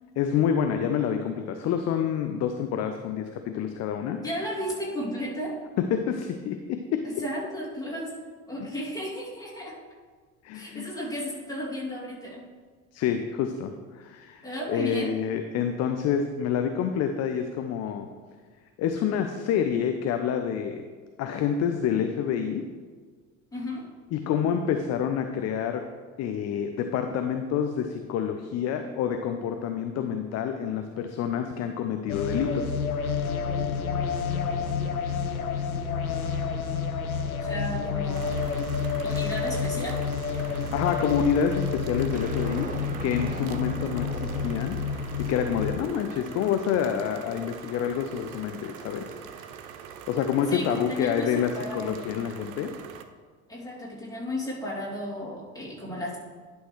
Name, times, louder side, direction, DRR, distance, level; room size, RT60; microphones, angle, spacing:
voice 1, 0.2-4.2 5.8-7.0 10.4-10.9 12.9-18.1 18.8-20.8 21.2-22.6 24.1-25.9 26.2-32.8 40.4-49.4 50.1-52.7, left 8 dB, 40° left, 6 dB, 0.6 m, -28 dB
voice 2, 4.2-5.6 7.0-8.1 8.5-9.7 10.5-12.4 14.4-15.1 23.5-23.9 37.4-38.4 39.0-40.0 50.5-52.0 53.5-56.2, equal, 10° left, -5 dB, 2.7 m, -34 dB
sound 1, 32.1-45.8, left 5 dB, 90° left, 0.6 m, -29 dB
sound 2, 38.1-53.1, right 7 dB, 65° right, 0.7 m, -43 dB
sound 3, 42.1-46.5, right 4 dB, 20° right, 0.7 m, -41 dB
11.0 x 6.3 x 3.2 m, 1.5 s
figure-of-eight pair, 60°, 41 cm